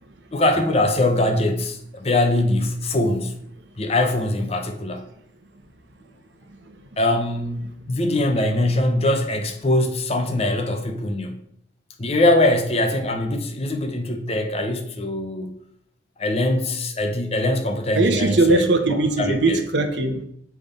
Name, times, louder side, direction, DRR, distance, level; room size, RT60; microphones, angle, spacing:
voice 1, 0.3-3.3 3.8-5.0 7.0-11.4 12.0-15.6 16.2-18.7 19.2-19.6, left 1 dB, 35° left, 0.6 m, -22 dB
voice 2, 17.9-20.2, right 3 dB, 70° right, 1.0 m, -20 dB
7.4 x 3.5 x 5.3 m
head